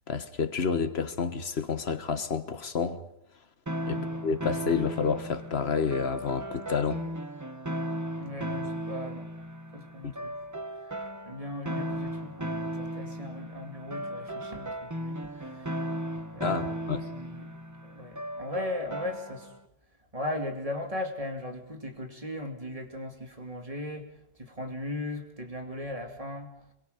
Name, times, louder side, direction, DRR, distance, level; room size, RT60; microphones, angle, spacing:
voice 1, 0.1-3.0 3.9-7.0 10.0-10.1 16.4-17.0, left 5 dB, 65° left, 1.6 m, -29 dB
sound 1, 3.7-19.6, equal, 15° right, 1.1 m, -36 dB
voice 2, 8.2-9.3 9.7-10.3 11.3-15.8 16.3-17.6 17.8-19.5 20.1-24.1 24.4-26.7, left 1 dB, 30° right, 2.7 m, -38 dB
26.5 x 22.5 x 5.2 m
omnidirectional pair, 1.1 m